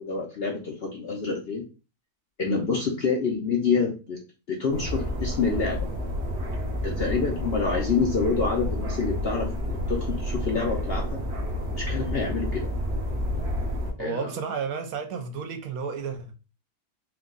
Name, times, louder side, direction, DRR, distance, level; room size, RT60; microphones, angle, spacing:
voice 1, 0.0-1.6 2.4-4.2 4.5-5.9 6.8-11.1 11.7-12.7 14.0-14.3, left 4 dB, 55° left, 0.7 m, -27 dB
sound 1, 4.7-13.9, left 1 dB, 45° right, 1.2 m, -30 dB
voice 2, 14.0-16.3, right 5 dB, 70° right, 1.1 m, -32 dB
4.6 x 2.3 x 3.8 m
omnidirectional pair, 1.7 m